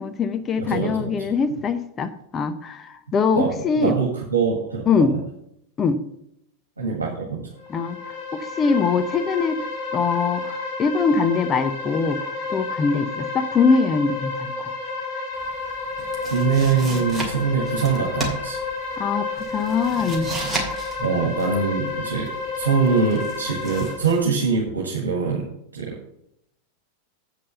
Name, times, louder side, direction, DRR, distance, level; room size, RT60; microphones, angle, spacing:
voice 1, 0.0-4.0 4.9-5.1 5.8-6.0 7.7-8.0 8.3-9.6 9.9-14.7 19.0-20.8, left 5 dB, 25° left, 9 dB, 0.7 m, -23 dB
voice 2, 0.6-1.3 3.3-5.2 6.8-7.5 16.3-18.6 21.0-22.3 22.6-26.0, right 5 dB, 75° right, -2 dB, 1.6 m, -23 dB
sound 1, 7.6-23.9, left 4 dB, 40° left, 3.5 m, -30 dB
sound 2, 15.4-24.2, right 2 dB, 10° right, 2.6 m, -34 dB
8.4 x 5.3 x 6.8 m, 0.78 s
figure-of-eight pair, 90°, 0 cm